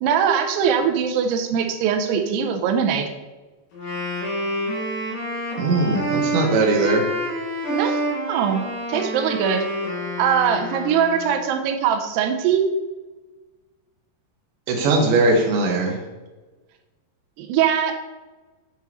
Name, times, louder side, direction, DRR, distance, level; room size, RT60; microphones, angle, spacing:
voice 1, 0.0-3.1 7.7-8.0 8.3-8.6 8.9-9.6 10.2-12.7 17.4-17.9, right 7 dB, 90° right, 4 dB, 2.8 m, -21 dB
Wind instrument woodwind instrument, 3.7-11.5, equal, 60° left, 3.3 m, -28 dB
voice 2, 5.6-7.0 14.7-16.0, right 3 dB, 65° right, 1 dB, 2.4 m, -19 dB
8.8 x 5.6 x 3.1 m, 1.2 s
omnidirectional pair, 4.7 m